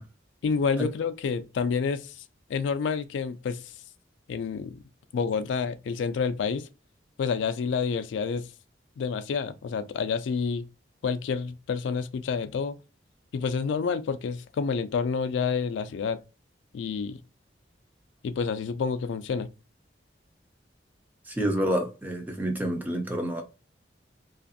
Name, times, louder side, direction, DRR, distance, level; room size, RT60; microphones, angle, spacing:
voice 1, 0.4-2.1 2.5-3.7 4.3-4.8 5.1-6.7 7.2-8.5 9.0-10.6 11.0-12.8 13.3-16.2 16.7-17.2 18.2-19.5, left 5 dB, 85° left, 0.3 m, -28 dB
voice 2, 21.3-23.4, right 1 dB, 10° right, 0.4 m, -28 dB
2.5 x 2.4 x 2.5 m
head